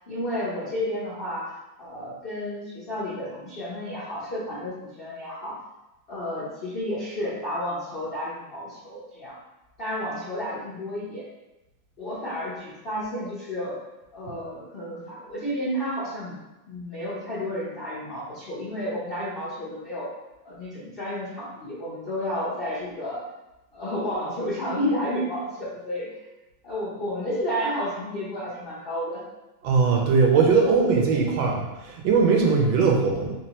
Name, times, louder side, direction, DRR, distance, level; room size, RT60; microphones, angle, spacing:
voice 1, 0.0-1.5 1.8-5.5 6.1-9.4 9.8-11.2 12.0-13.8 14.1-16.4 16.7-20.1 20.4-23.2 23.7-26.1 26.6-29.2, equal, 65° left, -9 dB, 0.5 m, -31 dB
voice 2, 29.6-33.3, right 5 dB, 85° right, 0 dB, 1.5 m, -20 dB
3.7 x 3.0 x 2.9 m, 1.0 s
omnidirectional pair, 2.1 m